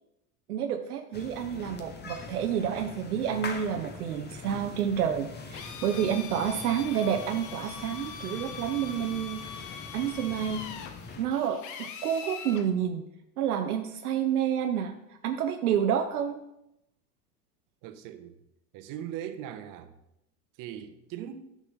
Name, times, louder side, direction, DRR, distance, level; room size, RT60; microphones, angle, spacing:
voice 1, 0.5-10.6 11.2-13.0 13.4-15.0 15.2-16.4, right 9 dB, 80° right, 0.7 m, -29 dB
sound 1, 1.1-11.3, left 4 dB, 25° left, 1.2 m, -43 dB
Drill, 5.5-12.7, left 7 dB, 45° left, 1.0 m, -42 dB
voice 2, 17.8-18.4 18.7-20.0 20.6-21.5, right 10 dB, 45° right, 1.0 m, -40 dB
9.9 x 6.3 x 4.0 m
hypercardioid pair, 90°, 44 cm